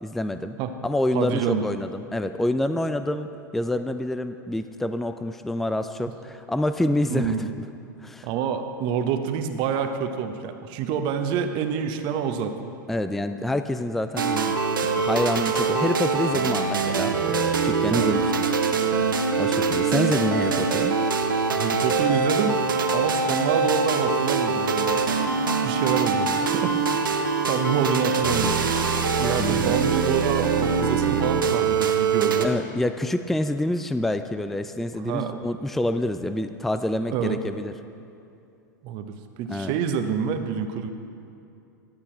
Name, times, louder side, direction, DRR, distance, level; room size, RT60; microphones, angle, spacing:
voice 1, 0.0-0.6 0.8-7.4 8.0-8.3 12.9-14.5 14.8-17.2 17.6-18.4 19.4-21.0 29.4-29.8 32.4-37.7 39.5-39.7, left 1 dB, ahead, 10 dB, 0.3 m, -27 dB
voice 2, 1.1-1.6 7.1-7.5 8.2-12.7 17.3-17.4 17.9-18.2 21.5-22.6 22.9-25.0 25.6-26.8 27.1-28.6 29.2-32.5 34.9-35.3 37.1-37.4 38.8-40.9, right 7 dB, 50° right, 7 dB, 0.8 m, -27 dB
sound 1, 14.2-32.5, right 5 dB, 85° right, 0.8 m, -23 dB
12.0 x 8.3 x 4.5 m, 2.6 s
hypercardioid pair, 100°, 11 cm